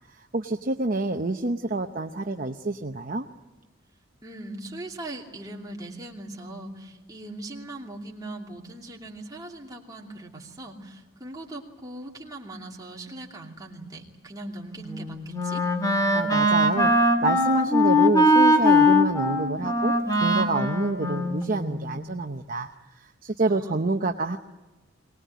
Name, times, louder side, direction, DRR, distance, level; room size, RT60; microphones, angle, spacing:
voice 1, 0.2-3.3 16.1-24.4, right 2 dB, 40° right, 4 dB, 0.8 m, -28 dB
voice 2, 4.2-15.6 23.5-24.0, right 1 dB, 20° right, -1 dB, 2.7 m, -40 dB
Wind instrument woodwind instrument, 14.8-22.0, left 1 dB, 15° left, 2.2 m, -21 dB
23.0 x 19.5 x 9.3 m, 1.2 s
head